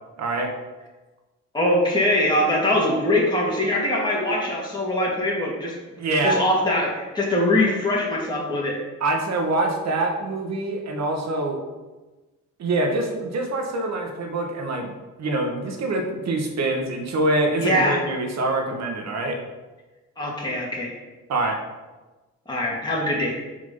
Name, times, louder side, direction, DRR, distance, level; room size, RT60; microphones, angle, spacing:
voice 1, 0.2-0.5 6.0-6.4 9.0-11.6 12.6-14.9 15.2-19.4 21.3-21.6, right 2 dB, 60° right, 3 dB, 1.7 m, -25 dB
voice 2, 1.5-5.7 6.2-8.8 17.6-18.0 20.2-20.9 22.5-23.3, left 1 dB, 15° left, -5 dB, 2.4 m, -22 dB
6.8 x 4.9 x 5.5 m, 1.2 s
cardioid pair, 90°, 30 cm